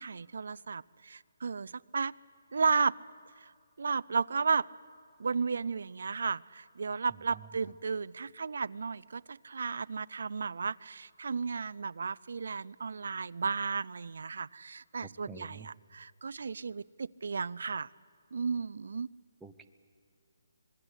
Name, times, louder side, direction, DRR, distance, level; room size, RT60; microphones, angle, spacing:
voice 1, 0.0-2.1 2.5-3.0 3.4-3.5 3.8-4.7 5.2-17.9 18.3-19.1, right 5 dB, 60° right, 17 dB, 0.5 m, -34 dB
voice 2, 15.0-15.7 19.4-19.6, right 5 dB, 5° right, 4 dB, 0.7 m, -48 dB
26.0 x 21.0 x 8.2 m, 2.3 s
hypercardioid pair, 175°, 0 cm